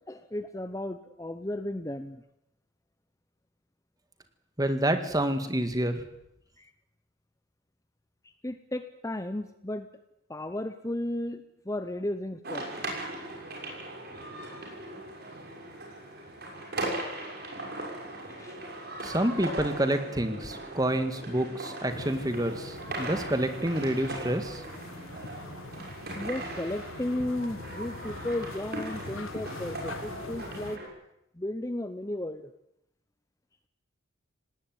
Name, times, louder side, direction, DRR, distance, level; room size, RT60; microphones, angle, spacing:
voice 1, 0.1-2.2 6.6-6.7 8.2-9.9 10.3-12.7 14.6-14.8 18.3-18.6 25.8-25.9 26.1-30.8 31.3-32.4, left 1 dB, 15° left, 10 dB, 0.8 m, -34 dB
voice 2, 4.6-6.0 19.0-24.6, right 1 dB, 15° right, 8 dB, 1.8 m, -28 dB
sound 1, 12.4-30.9, right 1 dB, 45° right, 6.3 m, -39 dB
sound 2, 21.9-30.8, left 3 dB, 75° left, 1.4 m, -43 dB
18.5 x 18.5 x 9.4 m, 0.81 s
head